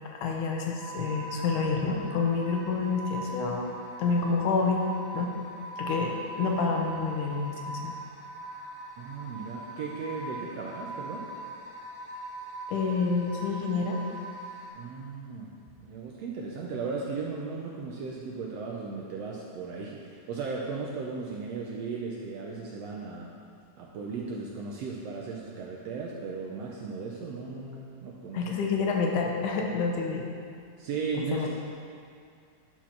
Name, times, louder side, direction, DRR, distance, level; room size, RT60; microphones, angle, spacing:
voice 1, 0.1-3.7 4.0-4.8 5.1-5.3 5.8-7.9 12.7-14.0 28.3-30.3 31.3-31.5, left 4 dB, 90° left, 1 dB, 2.5 m, -28 dB
sound 1, 0.8-14.7, right 2 dB, 20° right, 1.5 m, -41 dB
voice 2, 9.0-11.3 14.7-15.5 15.8-23.3 23.8-28.4 30.8-31.5, right 4 dB, 75° right, -2 dB, 1.6 m, -36 dB
10.0 x 4.6 x 5.8 m, 2.4 s
omnidirectional pair, 3.6 m